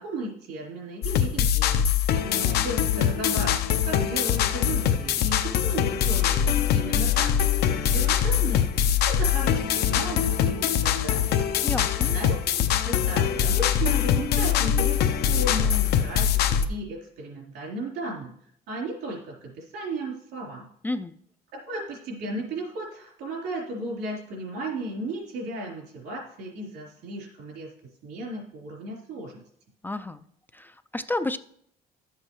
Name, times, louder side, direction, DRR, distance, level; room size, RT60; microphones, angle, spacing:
voice 1, 0.0-1.9 2.2-8.7 9.1-11.6 12.1-18.3 18.7-20.7 21.5-27.7 28.0-29.4, right 1 dB, 85° right, -2 dB, 3.7 m, -35 dB
sound 1, 1.0-16.6, left 9 dB, 70° left, 0.7 m, -23 dB
voice 2, 11.6-12.1 20.8-21.1 29.8-30.3 30.5-31.4, left 2 dB, 10° left, 11 dB, 0.3 m, -31 dB
11.5 x 7.6 x 3.1 m, 0.68 s
cardioid pair, 110°, 17 cm